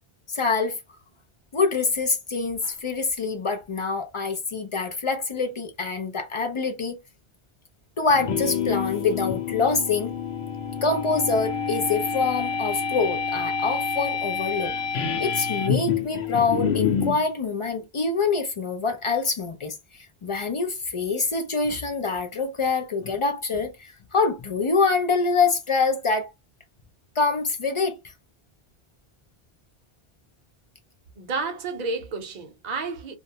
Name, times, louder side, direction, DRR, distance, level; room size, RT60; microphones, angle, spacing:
voice 1, 0.3-0.8 1.5-7.0 8.0-10.1 10.8-14.7 15.2-19.8 20.2-26.3 27.2-28.0, left 4 dB, 50° left, 0.4 m, -25 dB
sound 1, 8.1-17.2, left 6 dB, 90° left, 0.9 m, -27 dB
voice 2, 31.2-33.1, right 4 dB, 50° right, 0.7 m, -31 dB
2.5 x 2.0 x 2.7 m
omnidirectional pair, 1.0 m